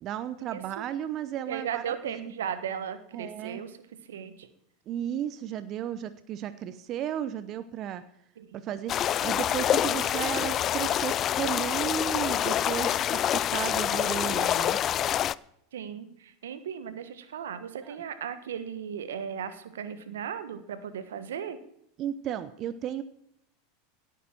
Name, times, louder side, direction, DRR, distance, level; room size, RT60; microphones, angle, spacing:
voice 1, 0.0-2.3 3.1-3.6 4.9-8.0 8.6-14.8 17.8-18.0 22.0-23.0, right 10 dB, 45° right, 14 dB, 0.7 m, -34 dB
voice 2, 0.5-0.8 1.5-3.8 4.1-4.5 8.4-8.6 15.7-21.6, right 8 dB, 80° right, 12 dB, 1.3 m, -36 dB
sound 1, 8.9-15.3, left 11 dB, 40° left, 0.4 m, -26 dB
17.0 x 9.2 x 4.5 m, 0.75 s
hypercardioid pair, 90°, 0 cm